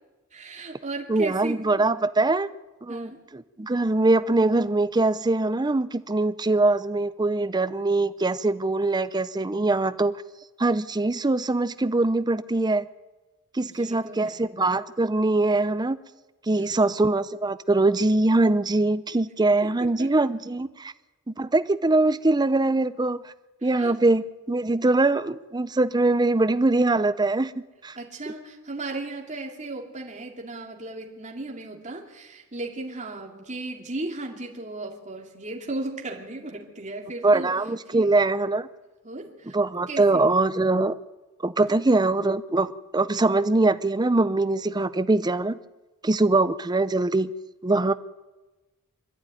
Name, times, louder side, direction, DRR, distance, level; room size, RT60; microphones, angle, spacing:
voice 1, 0.3-1.6 2.9-3.2 13.6-14.4 16.6-16.8 19.6-20.3 23.6-24.0 27.9-37.5 37.9-38.1 39.0-39.6 39.9-40.3 41.7-41.8, right 2 dB, 35° right, 0 dB, 2.7 m, -36 dB
voice 2, 1.1-2.5 2.8-10.1 10.6-12.9 13.5-16.0 16.5-20.9 21.3-23.2 23.6-27.5 27.8-28.0 37.2-38.7 39.5-40.9 41.4-45.6 46.0-47.3 47.6-47.9, right 2 dB, 20° right, 13 dB, 0.6 m, -22 dB
26.0 x 11.5 x 9.4 m, 1.2 s
head